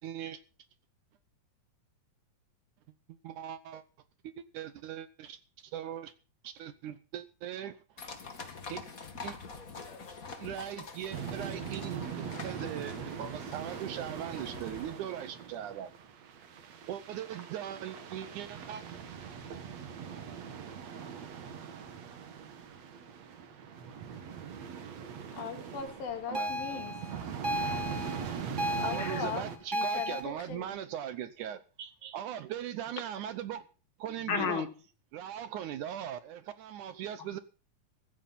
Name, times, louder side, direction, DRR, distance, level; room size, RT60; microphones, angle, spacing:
voice 1, 0.0-0.4 3.1-3.8 4.2-6.1 6.4-7.8 8.7-8.8 9.2-9.4 10.4-15.9 16.9-18.8 26.3-26.5 28.8-33.6 34.0-34.7 35.1-37.4, right 10 dB, 70° right, 2.1 m, -40 dB
sound 1, 8.0-14.9, left 4 dB, 30° left, 1.7 m, -46 dB
sound 2, 11.1-29.6, right 7 dB, 55° right, 2.6 m, -41 dB
voice 2, 25.3-27.3 28.8-30.8, left 7 dB, 80° left, 4.3 m, -40 dB
sound 3, 26.3-30.2, equal, 25° right, 1.0 m, -34 dB
voice 3, 27.5-28.6 29.0-29.2 34.3-34.7, left 7 dB, 45° left, 1.8 m, -35 dB
15.5 x 14.5 x 4.2 m
omnidirectional pair, 4.1 m